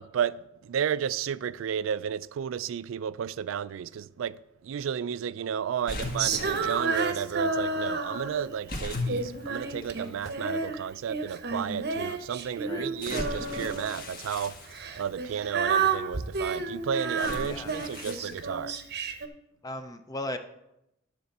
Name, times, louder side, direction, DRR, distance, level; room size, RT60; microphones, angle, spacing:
voice 1, 0.0-14.6 14.9-18.8, right 8 dB, 80° right, 0.3 m, -32 dB
sound 1, 5.9-7.0 8.7-10.3 11.1-11.2 13.0-15.3 17.2-18.3, left 2 dB, 45° left, 1.4 m, -37 dB
Female singing, 6.2-8.6 9.1-10.8 11.1-13.9 14.7-19.3, right 4 dB, 55° right, 0.8 m, -30 dB
voice 2, 17.4-17.7 19.6-20.4, left 1 dB, 20° left, 0.5 m, -36 dB
11.0 x 4.4 x 6.6 m
head